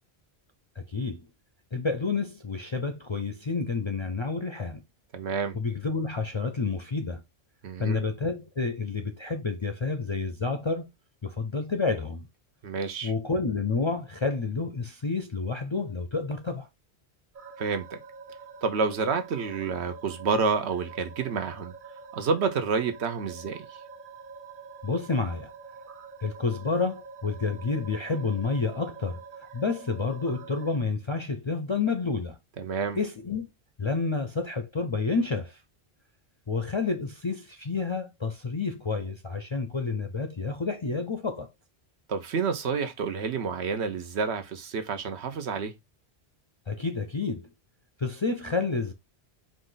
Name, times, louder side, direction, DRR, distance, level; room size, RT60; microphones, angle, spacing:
voice 1, 0.8-1.3 1.7-4.8 5.5-7.2 7.8-10.9 11.2-12.2 13.0-16.7 24.8-25.5 26.2-32.4 33.0-33.5 33.8-35.6 36.5-41.5 46.7-47.5 48.0-48.9, left 4 dB, 40° left, 0.4 m, -29 dB
voice 2, 5.1-5.6 7.6-8.0 12.6-13.1 17.6-18.0 18.6-21.7 22.1-23.8 32.6-33.0 42.1-45.7, right 5 dB, 80° right, 1.1 m, -29 dB
sound 1, 17.3-30.8, right 5 dB, 55° right, 0.8 m, -46 dB
4.8 x 2.6 x 3.9 m
omnidirectional pair, 1.1 m